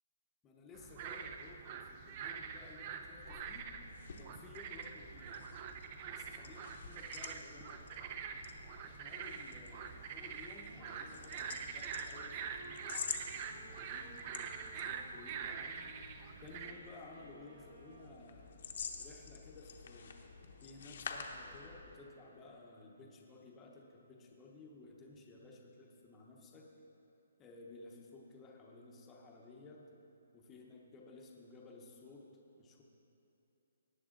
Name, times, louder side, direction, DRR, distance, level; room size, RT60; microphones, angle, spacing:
voice 1, 0.4-3.7 4.2-5.4 6.1-8.2 8.8-14.3 14.6-15.9 16.4-18.5 19.0-20.2 20.6-26.7 27.4-29.8 30.3-32.3 32.6-32.8, left 3 dB, 10° left, -1 dB, 0.9 m, -56 dB
sound 1, 0.7-16.7, right 6 dB, 25° right, 0.4 m, -45 dB
sound 2, 3.1-22.0, left 5 dB, 45° left, 0.9 m, -49 dB
Wind instrument woodwind instrument, 10.7-15.5 15.8-18.4, right 3 dB, 40° right, 1.7 m, -60 dB
18.0 x 8.2 x 3.8 m, 2.9 s
hypercardioid pair, 175°, 0 cm